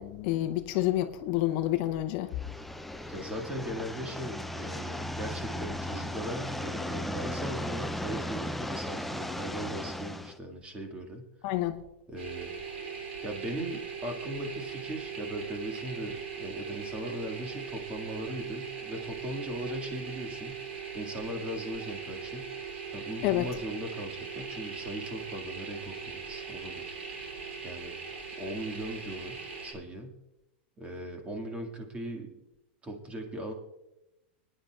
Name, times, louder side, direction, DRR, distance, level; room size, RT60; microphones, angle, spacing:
voice 1, 0.0-2.3 11.4-11.8 23.2-23.5, left 14 dB, 55° left, 0.7 m, -29 dB
sound 1, 2.3-10.4, left 1 dB, ahead, 0.5 m, -36 dB
voice 2, 3.1-11.3 12.1-12.5 13.2-20.6 20.9-22.5 22.9-26.9 27.6-27.9 28.4-30.2 30.8-32.4 32.8-33.5, right 1 dB, 20° right, 2.0 m, -38 dB
sound 2, 12.2-29.7, right 6 dB, 85° right, 3.1 m, -40 dB
24.5 x 9.9 x 2.4 m
hypercardioid pair, 125°, 6 cm